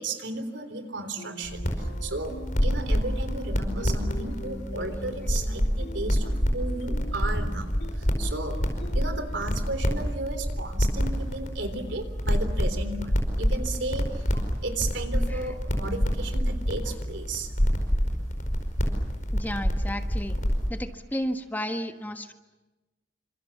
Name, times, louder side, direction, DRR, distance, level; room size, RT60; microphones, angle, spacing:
voice 1, 0.0-1.7 2.0-2.3 2.6-7.8 8.2-8.6 8.9-14.1 14.6-17.5, right 2 dB, 75° right, 8 dB, 3.7 m, -34 dB
sound 1, 1.2-9.4, left 1 dB, 70° left, 2.8 m, -43 dB
sound 2, 1.4-20.7, equal, 45° left, 5.0 m, -27 dB
voice 2, 19.3-20.4 20.7-22.3, equal, 10° left, 6 dB, 1.4 m, -33 dB
28.5 x 26.5 x 7.2 m, 1.1 s
head